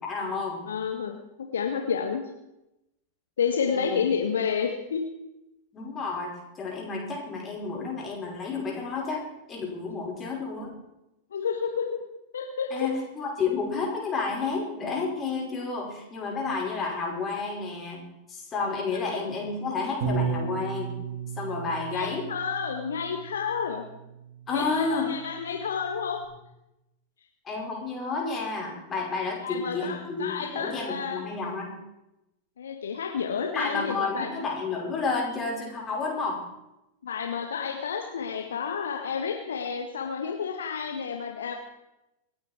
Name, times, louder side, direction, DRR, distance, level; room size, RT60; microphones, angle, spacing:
voice 1, 0.0-0.7 3.7-4.0 5.7-10.7 12.7-18.0 18.3-20.9 21.4-22.2 24.5-25.1 27.4-31.8 33.5-36.4, left 4 dB, 25° left, -1 dB, 5.4 m, -31 dB
voice 2, 0.7-2.2 3.4-5.0 11.3-12.0 12.3-12.7 21.9-23.8 24.5-26.2 29.4-31.2 32.6-34.3 37.0-41.5, left 6 dB, 65° left, 4 dB, 1.4 m, -30 dB
Bass guitar, 20.0-26.2, right 5 dB, 45° right, 3.7 m, -35 dB
26.0 x 9.5 x 4.5 m, 0.90 s
figure-of-eight pair, 90°, 0 cm